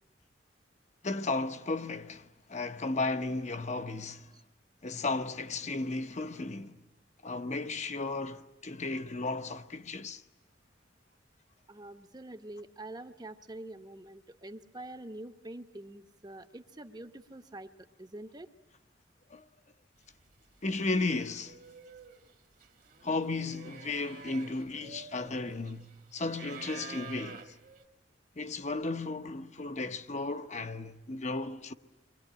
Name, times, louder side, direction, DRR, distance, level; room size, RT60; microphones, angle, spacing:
voice 1, 1.0-4.3 4.8-6.8 7.2-10.2 19.3-19.4 20.6-21.6 23.0-25.8 26.1-27.5 28.4-31.7, left 3 dB, 40° left, 1.0 m, -34 dB
voice 2, 11.7-17.7 18.0-18.5, right 1 dB, 20° right, 1.0 m, -46 dB
sound 1, 20.3-20.4 20.7-27.9, right 5 dB, 50° right, 1.6 m, -49 dB
29.0 x 23.0 x 8.9 m
head